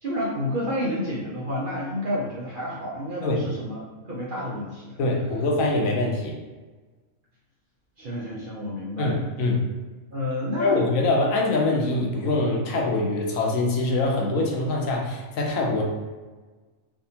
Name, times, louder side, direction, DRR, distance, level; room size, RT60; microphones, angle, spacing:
voice 1, 0.0-3.8 4.1-4.9 8.0-9.2 10.1-10.9, left 1 dB, 50° right, -6 dB, 0.6 m, -30 dB
voice 2, 5.0-6.3 9.0-9.7 10.6-15.8, left 2 dB, 75° left, -1 dB, 1.1 m, -24 dB
3.5 x 2.6 x 2.7 m, 1.3 s
omnidirectional pair, 1.4 m